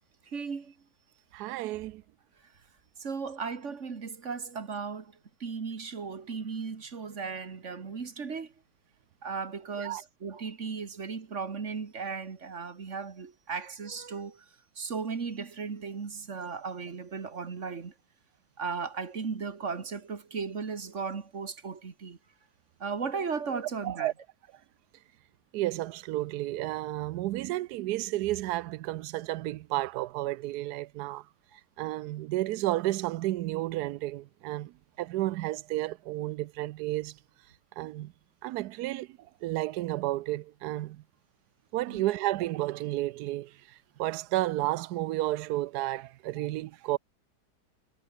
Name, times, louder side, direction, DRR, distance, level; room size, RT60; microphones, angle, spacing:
voice 1, 0.3-0.7 3.0-8.5 9.2-14.5 14.8-17.9 18.6-22.2 22.8-24.1 41.9-42.0, right 5 dB, 45° right, 2.0 m, -36 dB
voice 2, 1.3-2.0 9.8-10.0 23.8-24.1 25.5-31.2 31.8-34.7 35.0-37.1 37.8-38.1 38.4-39.1 39.4-41.0 41.7-43.5 44.0-47.0, right 16 dB, 80° right, 1.1 m, -31 dB
omnidirectional pair, 1.7 m